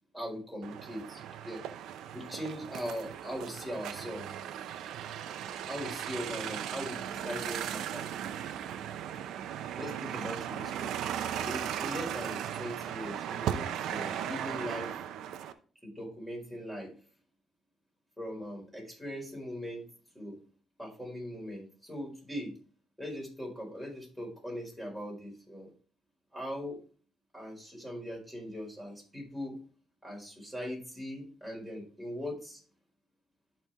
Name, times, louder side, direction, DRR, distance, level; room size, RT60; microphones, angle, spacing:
voice 1, 0.1-1.6 2.1-4.3 5.7-8.1 9.7-11.0 11.4-14.9 15.8-16.9 18.2-19.8 20.1-20.4 20.8-22.5 23.0-25.7 26.3-26.8 27.3-29.6 30.0-32.6, equal, ahead, -2 dB, 4.5 m, -40 dB
sound 1, 0.6-15.5, right 10 dB, 85° right, 0.6 m, -37 dB
12.5 x 4.4 x 3.4 m, 0.41 s
cardioid pair, 90°, 0 cm